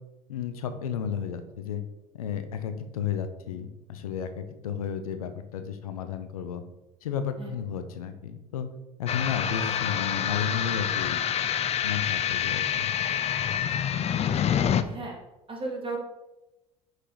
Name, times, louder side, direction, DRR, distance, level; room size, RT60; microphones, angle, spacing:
voice 1, 0.3-1.8 2.1-6.6 7.0-8.7 9.0-11.2 11.8-12.9, left 7 dB, 85° left, 9 dB, 0.6 m, -33 dB
sound 1, 9.1-14.8, left 9 dB, 35° left, 0.5 m, -27 dB
voice 2, 14.2-15.2 15.5-16.0, right 3 dB, 30° right, 0 dB, 1.9 m, -36 dB
6.0 x 5.4 x 3.9 m, 0.97 s
hypercardioid pair, 65°, 18 cm